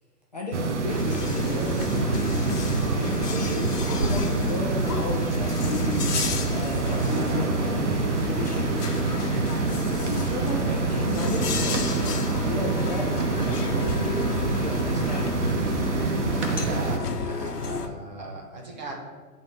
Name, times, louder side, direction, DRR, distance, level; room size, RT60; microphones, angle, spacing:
voice 1, 0.3-2.4 2.9-6.1 6.5-7.9 8.2-8.8 9.9-11.8 12.4-13.1 13.4-15.9, left 1 dB, 25° left, -3 dB, 0.6 m, -34 dB
sound 1, 0.5-17.0, right 3 dB, 50° right, 0.8 m, -26 dB
sound 2, 0.9-17.9, left 4 dB, 75° left, 1.0 m, -32 dB
voice 2, 16.5-18.9, right 2 dB, 30° right, -1 dB, 1.0 m, -37 dB
8.0 x 3.9 x 5.1 m, 1.5 s
hypercardioid pair, 165°, 47 cm